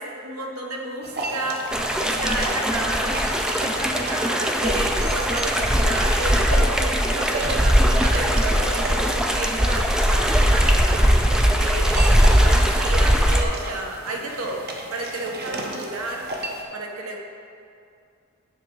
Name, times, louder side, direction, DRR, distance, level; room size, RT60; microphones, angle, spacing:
voice 1, 0.0-16.3 16.7-17.2, right 2 dB, 75° right, 1 dB, 1.1 m, -32 dB
sound 1, 1.0-16.6, right 2 dB, 50° right, 0.8 m, -33 dB
sound 2, 1.7-13.4, equal, 5° right, 0.3 m, -20 dB
9.6 x 3.4 x 6.3 m, 2.5 s
head